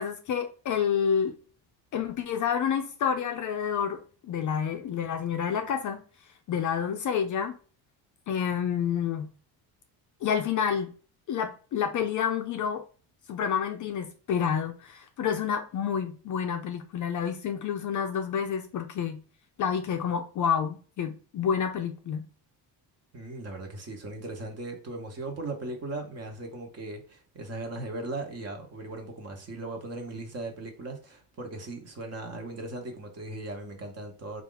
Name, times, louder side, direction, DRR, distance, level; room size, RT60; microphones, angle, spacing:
voice 1, 0.0-1.3 1.9-6.0 6.5-7.6 8.3-9.3 10.2-10.9 11.3-12.8 13.3-19.2 19.6-22.2, left 7 dB, 45° left, 0.4 m, -29 dB
voice 2, 23.1-34.4, right 2 dB, 35° right, 0.9 m, -38 dB
4.1 x 2.4 x 3.8 m
cardioid pair, 170°, 44 cm